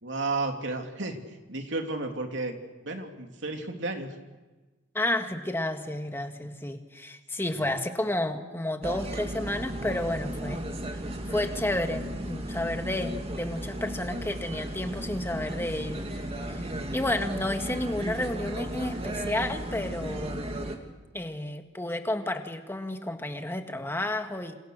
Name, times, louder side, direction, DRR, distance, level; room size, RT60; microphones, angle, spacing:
voice 1, 0.0-2.6 2.8-4.1 7.6-7.8, right 3 dB, 75° right, 3 dB, 3.2 m, -33 dB
voice 2, 4.9-10.6 11.3-16.0 16.4-20.5 21.1-24.6, left 1 dB, 10° left, 6 dB, 1.8 m, -31 dB
sound 1, 8.8-20.8, right 1 dB, 35° right, 2.7 m, -35 dB
28.5 x 27.5 x 6.6 m, 1.2 s
head